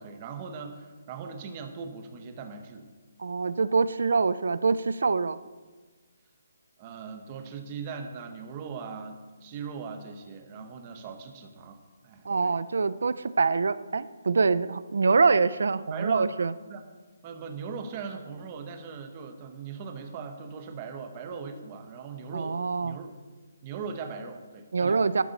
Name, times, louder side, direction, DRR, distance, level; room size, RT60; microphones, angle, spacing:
voice 1, 0.0-2.9 6.8-12.5 15.9-16.4 16.7-16.8 17.2-22.6 22.8-23.1 23.6-25.0, right 5 dB, 15° right, 6 dB, 1.0 m, -39 dB
voice 2, 3.2-5.4 12.2-16.5 22.3-23.0 24.7-25.2, right 4 dB, 60° right, 16 dB, 0.6 m, -25 dB
13.0 x 13.0 x 4.1 m, 1.4 s
hypercardioid pair, 180°, 0 cm